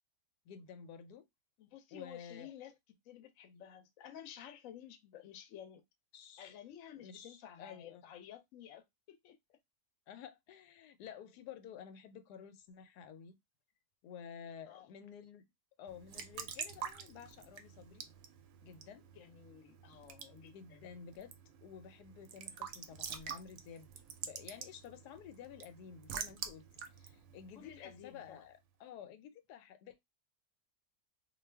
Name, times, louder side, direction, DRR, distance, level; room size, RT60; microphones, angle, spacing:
voice 1, 0.5-1.3 1.9-2.5 6.1-6.5 7.0-8.0 10.1-13.4 14.0-15.4 15.8-18.1 18.6-19.1 20.5-21.3 21.6-23.9 24.2-26.6 27.0-30.0, left 8 dB, 90° left, 1.1 m, -52 dB
voice 2, 1.6-2.8 3.0-5.8 6.4-9.6 14.7-14.9 19.2-20.9 27.5-28.4, left 10 dB, 65° left, 0.9 m, -53 dB
Raindrop / Drip / Trickle dribble, 15.9-28.3, right 7 dB, 70° right, 0.9 m, -48 dB
2.5 x 2.4 x 3.3 m
omnidirectional pair, 1.7 m